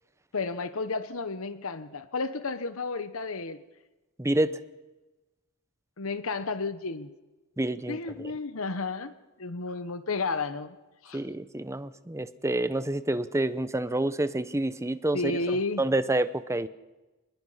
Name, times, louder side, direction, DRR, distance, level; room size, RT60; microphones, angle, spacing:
voice 1, 0.3-3.6 6.0-7.1 7.9-9.1 9.4-10.8 11.0-11.2 15.1-15.8, left 3 dB, 70° left, 12 dB, 1.0 m, -32 dB
voice 2, 4.2-4.6 7.6-8.0 11.1-15.3 15.8-16.7, right 1 dB, 15° right, 13 dB, 0.8 m, -28 dB
25.0 x 21.0 x 5.7 m, 1.1 s
head